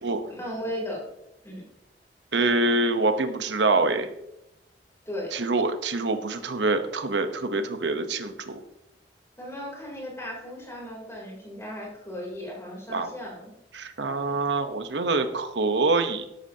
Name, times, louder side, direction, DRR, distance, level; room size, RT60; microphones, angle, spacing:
voice 1, 0.3-1.1 1.4-1.6 5.0-5.3 9.4-13.5 14.2-14.4, equal, 15° left, -3 dB, 3.3 m, -36 dB
voice 2, 2.3-4.1 5.3-8.6 12.9-13.1 13.7-16.2, right 3 dB, 80° right, 8 dB, 1.0 m, -25 dB
13.0 x 11.5 x 2.9 m, 0.85 s
head